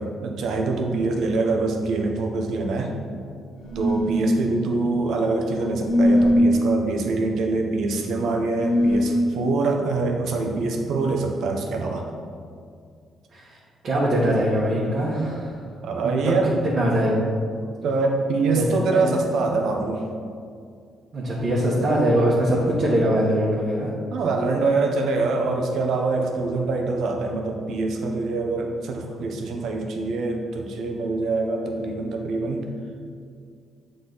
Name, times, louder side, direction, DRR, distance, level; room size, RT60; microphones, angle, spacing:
voice 1, 0.0-2.9 3.7-12.0 15.8-16.6 17.8-20.0 24.1-32.7, right 3 dB, 75° right, 2 dB, 0.8 m, -24 dB
sound 1, 3.6-4.3 5.8-6.4 8.5-9.1, left 1 dB, 60° left, 0.9 m, -20 dB
voice 2, 13.8-15.5 16.0-16.1 16.6-17.3 18.5-18.7 18.9-19.1 21.1-23.9, right 1 dB, 55° right, -7 dB, 1.4 m, -22 dB
7.6 x 4.0 x 4.0 m, 2.2 s
cardioid pair, 90°, 0 cm